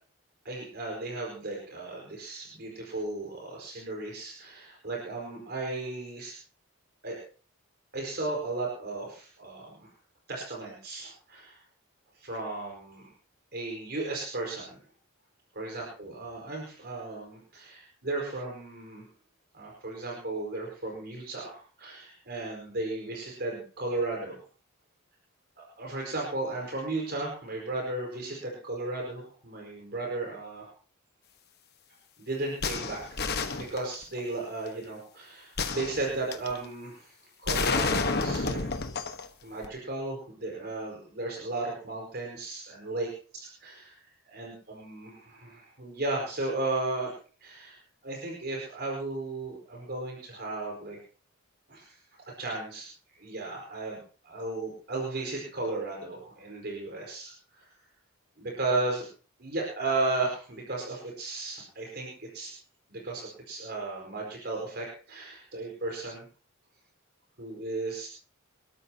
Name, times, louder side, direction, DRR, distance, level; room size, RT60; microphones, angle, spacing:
voice 1, 0.4-6.4 7.0-7.2 7.9-9.9 10.3-11.6 12.1-13.1 13.5-14.8 15.5-19.0 19.5-24.4 25.6-30.7 32.2-33.0 33.5-38.6 39.4-43.1 43.3-43.9 44.3-47.1 47.4-51.0 51.7-51.9 52.4-52.9 53.2-54.0 54.2-57.7 58.4-59.0 59.4-62.5 62.9-66.2 67.4-68.1, right 2 dB, 50° right, -2 dB, 5.0 m, -35 dB
sound 1, 32.6-34.2 35.6-36.6 37.5-39.3 39.6-39.7, left 4 dB, 50° left, 1.3 m, -30 dB
27.0 x 13.0 x 2.9 m, 0.40 s
head